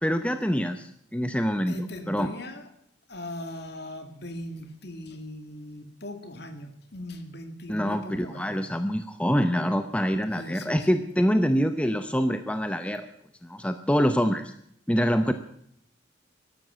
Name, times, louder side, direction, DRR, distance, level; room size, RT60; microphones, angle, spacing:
voice 1, 0.0-2.3 7.7-13.1 13.4-14.5 14.9-15.3, equal, 5° left, 8 dB, 0.7 m, -25 dB
voice 2, 1.7-2.6 3.1-8.6 10.4-11.0, left 1 dB, 55° left, 7 dB, 2.2 m, -39 dB
12.5 x 12.0 x 9.0 m, 0.69 s
head